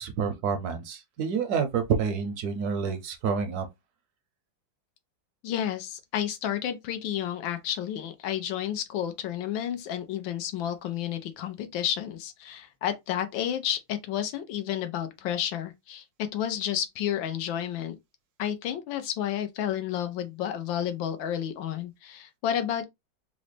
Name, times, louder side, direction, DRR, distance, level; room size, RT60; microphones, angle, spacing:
voice 1, 0.0-3.7, right 6 dB, 70° right, 0.9 m, -28 dB
voice 2, 5.4-16.0 16.3-18.0 18.4-22.8, left 10 dB, 85° left, 1.4 m, -31 dB
3.9 x 2.1 x 3.2 m
omnidirectional pair, 2.1 m